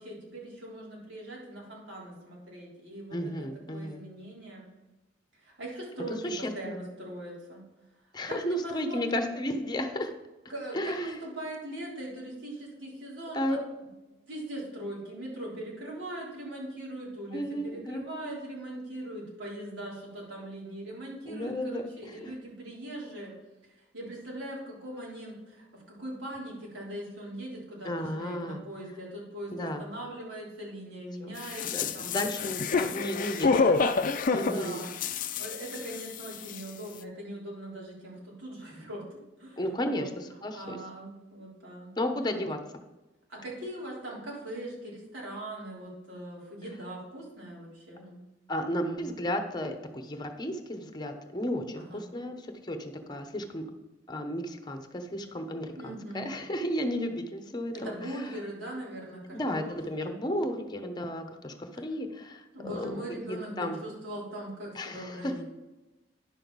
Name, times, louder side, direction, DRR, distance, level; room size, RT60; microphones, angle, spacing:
voice 1, 0.0-4.7 5.3-7.6 8.3-9.0 10.5-13.6 14.2-23.3 23.6-32.2 34.3-39.0 39.4-40.1 40.5-41.9 43.3-48.2 51.7-52.0 55.8-56.3 57.7-59.8 60.0-60.2 61.7-61.8 62.5-65.4, right 1 dB, 90° right, -4 dB, 3.6 m, -41 dB
voice 2, 3.1-4.0 6.2-6.8 8.1-10.1 10.7-11.2 13.3-13.6 17.3-18.3 21.2-21.8 22.2-22.3 27.8-28.6 29.5-29.9 31.2-31.4 31.7-34.9 39.6-40.8 42.0-42.6 48.5-53.6 54.1-57.9 59.3-63.0 63.3-63.8 64.7-65.3, equal, 25° left, 6 dB, 0.9 m, -33 dB
sound 1, 31.4-36.2 36.5-36.6, left 4 dB, 45° left, 0.5 m, -28 dB
10.0 x 6.6 x 4.0 m, 1.0 s
head